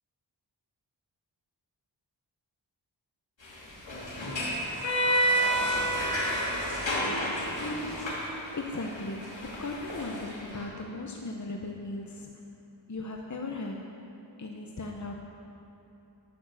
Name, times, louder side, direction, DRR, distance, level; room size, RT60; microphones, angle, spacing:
sound 1, 3.4-10.6, equal, 85° left, 2.6 m, -30 dB
voice 1, 8.5-12.3 12.9-13.9 14.4-15.1, left 2 dB, 40° left, 1 dB, 0.9 m, -37 dB
10.5 x 10.0 x 6.5 m, 3.0 s
wide cardioid pair, 60°, 44 cm